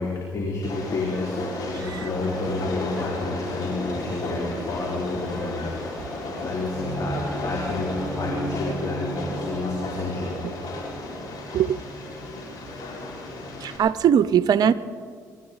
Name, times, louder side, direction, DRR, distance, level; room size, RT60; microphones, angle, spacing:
voice 1, 0.0-1.5 1.7-5.7 6.4-10.4 13.4-13.5, left 3 dB, 50° left, -3 dB, 3.1 m, -29 dB
Train, 0.6-13.8, left 2 dB, 65° left, 4.9 m, -34 dB
sound 1, 0.9-8.6, right 1 dB, 10° left, 2.7 m, -41 dB
sound 2, 6.7-13.0, right 2 dB, 10° right, 4.9 m, -36 dB
voice 2, 13.6-14.7, right 8 dB, 60° right, 16 dB, 0.5 m, -20 dB
24.5 x 13.0 x 4.0 m, 2.1 s
supercardioid pair, 65°, 7 cm